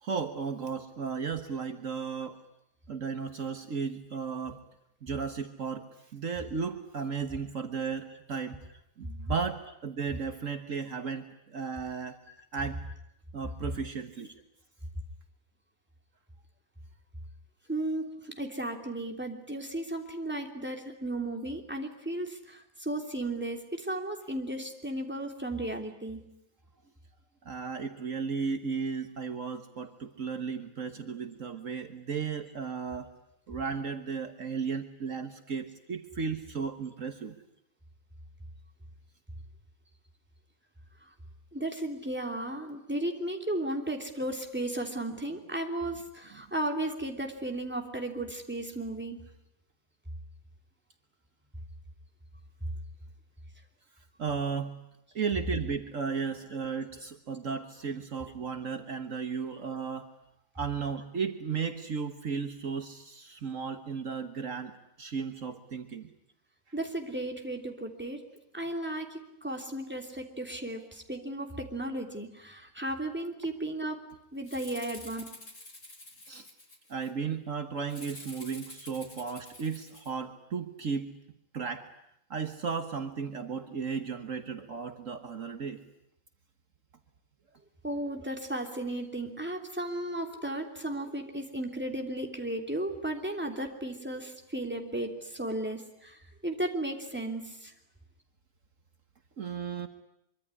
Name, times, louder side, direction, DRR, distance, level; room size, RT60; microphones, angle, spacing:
voice 1, 0.0-2.4 2.9-4.6 5.0-8.6 9.0-12.2 12.5-12.8 13.3-14.3 27.4-33.1 33.5-37.3 54.2-54.8 55.1-60.1 60.5-64.7 65.0-66.1 76.3-76.5 76.9-81.1 81.5-81.9 82.3-85.8 99.4-99.9, right 5 dB, 60° right, 8 dB, 1.7 m, -35 dB
voice 2, 17.7-26.2 41.5-49.2 66.7-68.2 68.5-74.0 74.3-75.2 87.8-97.7, right 1 dB, 5° right, 3 dB, 3.1 m, -35 dB
Rattle (instrument), 74.4-77.1 77.9-80.1, left 2 dB, 60° left, 4.7 m, -48 dB
24.5 x 24.5 x 9.8 m, 0.79 s
omnidirectional pair, 1.5 m